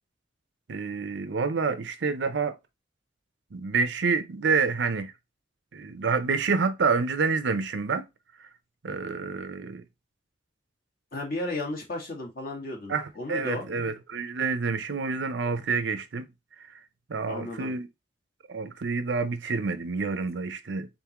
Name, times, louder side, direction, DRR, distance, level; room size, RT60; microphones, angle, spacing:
voice 1, 0.7-2.5 3.5-5.1 5.7-8.1 8.8-9.8 12.9-16.3 17.1-17.9 18.5-20.9, right 4 dB, 70° right, 0.6 m, -28 dB
voice 2, 11.1-13.6 17.3-17.7, left 2 dB, 50° left, 1.5 m, -34 dB
3.8 x 3.6 x 2.9 m
head